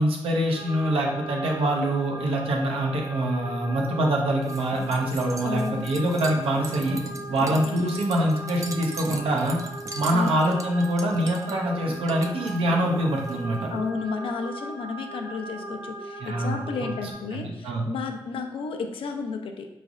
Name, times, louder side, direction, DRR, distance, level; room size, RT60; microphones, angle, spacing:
voice 1, 0.0-7.0 7.3-9.6 9.9-13.7 16.2-16.6 17.3-17.9, right 1 dB, 75° right, 0 dB, 0.7 m, -25 dB
sound 1, 0.5-17.1, right 1 dB, 55° right, 1.5 m, -38 dB
sound 2, 4.4-13.9, right 3 dB, 35° right, 0.4 m, -39 dB
voice 2, 5.4-5.9 7.6-7.9 10.1-10.3 11.5-11.6 13.7-19.7, left 4 dB, 70° left, 5 dB, 0.5 m, -32 dB
3.9 x 3.2 x 2.4 m, 0.98 s
cardioid pair, 60°, 10 cm